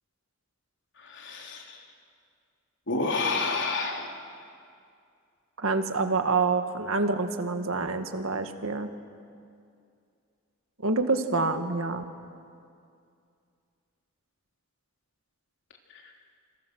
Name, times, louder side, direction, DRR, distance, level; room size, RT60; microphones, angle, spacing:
voice 1, 1.0-1.8 2.9-4.2 15.9-16.0, left 3 dB, 60° left, 1 dB, 3.5 m, -30 dB
voice 2, 5.6-8.9 10.8-12.0, right 3 dB, 75° right, 7 dB, 1.8 m, -27 dB
28.5 x 28.0 x 6.4 m, 2.4 s
head